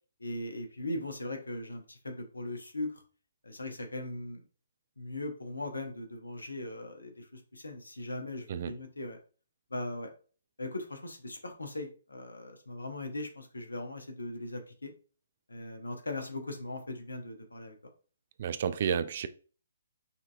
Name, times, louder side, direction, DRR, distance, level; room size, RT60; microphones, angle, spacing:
voice 1, 0.2-3.0 3.4-4.4 5.0-9.2 9.7-10.1 10.6-14.9 15.5-17.7, left 2 dB, 75° left, 5 dB, 0.9 m, -39 dB
voice 2, 18.4-19.3, right 7 dB, 45° right, 13 dB, 0.3 m, -31 dB
5.5 x 2.6 x 2.3 m, 0.38 s
figure-of-eight pair, 130°, 0 cm